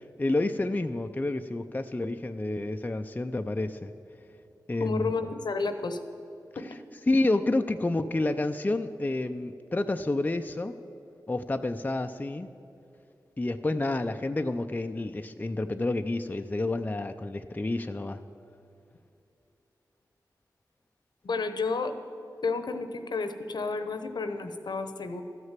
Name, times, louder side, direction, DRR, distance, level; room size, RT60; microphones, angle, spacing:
voice 1, 0.0-3.9 4.7-5.1 7.1-10.7 11.3-12.5 13.4-18.2, left 2 dB, 20° left, 8 dB, 0.5 m, -29 dB
voice 2, 4.8-6.0 6.6-6.7 21.2-21.9 22.4-25.2, left 4 dB, 70° left, 8 dB, 0.8 m, -31 dB
13.0 x 6.4 x 7.4 m, 2.7 s
cardioid pair, 45°, 8 cm